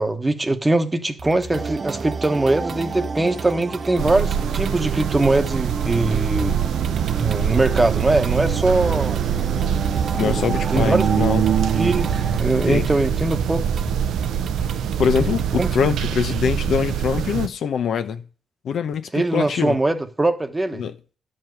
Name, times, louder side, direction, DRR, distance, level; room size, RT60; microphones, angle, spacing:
voice 1, 0.0-6.6 7.2-9.2 10.2-10.4 10.7-11.1 11.7-13.7 15.6-15.7 19.1-20.8, right 2 dB, 15° right, 1.1 m, -22 dB
sound 1, 1.2-15.8, right 5 dB, 55° right, 0.8 m, -35 dB
sound 2, 1.5-12.4, right 4 dB, 35° right, 0.5 m, -32 dB
sound 3, 4.0-17.5, right 9 dB, 90° right, 0.7 m, -23 dB
voice 2, 10.1-11.4 12.7-12.9 15.0-18.2 18.6-19.8 20.7-20.9, left 7 dB, 70° left, 0.9 m, -23 dB
12.0 x 5.3 x 7.8 m
cardioid pair, 115°, 0 cm